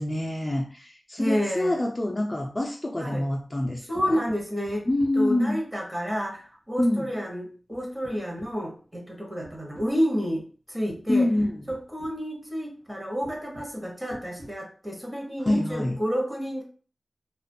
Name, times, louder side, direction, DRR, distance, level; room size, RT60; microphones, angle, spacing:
voice 1, 0.0-4.2 4.9-5.6 6.8-7.1 11.1-11.6 15.4-16.0, left 1 dB, 25° left, 0 dB, 0.4 m, -26 dB
voice 2, 1.2-1.8 3.0-3.3 3.9-4.9 5.2-10.4 10.7-11.3 11.7-16.6, equal, 15° right, -1 dB, 0.8 m, -30 dB
sound 1, 3.6-5.6 6.8-7.2 7.7-9.0 9.4-10.0 10.9-11.0 11.4-12.2 12.8-12.9 13.2-13.8 14.1-14.5, equal, 65° right, 1.0 m, -47 dB
2.3 x 2.2 x 2.6 m, 0.39 s
wide cardioid pair, 85°, 0 cm